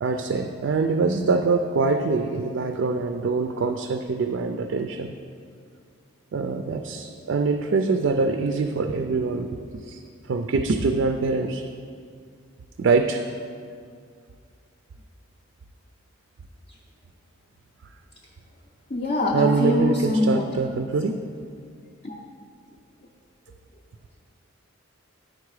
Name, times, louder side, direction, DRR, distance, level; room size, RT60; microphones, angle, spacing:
voice 1, 0.0-5.1 6.3-9.5 9.8-10.0 10.3-11.6 12.8-13.2 19.3-21.2, right 4 dB, 60° right, 5 dB, 0.3 m, -24 dB
voice 2, 18.9-20.6 22.0-22.1, left 1 dB, 40° left, -2 dB, 0.5 m, -23 dB
9.4 x 4.7 x 4.8 m, 2.2 s
head